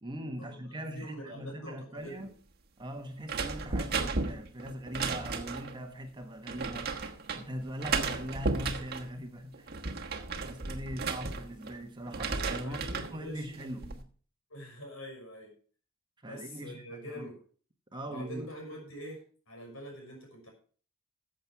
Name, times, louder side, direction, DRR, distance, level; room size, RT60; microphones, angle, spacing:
voice 1, 0.0-2.4 2.8-7.0 7.3-9.7 10.4-14.1 16.2-17.3 17.9-18.5, equal, 20° right, 1.3 m, -41 dB
voice 2, 0.9-2.3 12.6-13.4 14.5-15.5 16.2-17.4 18.1-20.5, equal, 75° left, 6.1 m, -45 dB
sound 1, 3.3-5.8 6.5-7.4 7.8-9.1 9.5-11.7 12.1-13.1 13.6-14.0, right 4 dB, 50° right, 1.3 m, -34 dB
14.5 x 7.6 x 4.7 m
head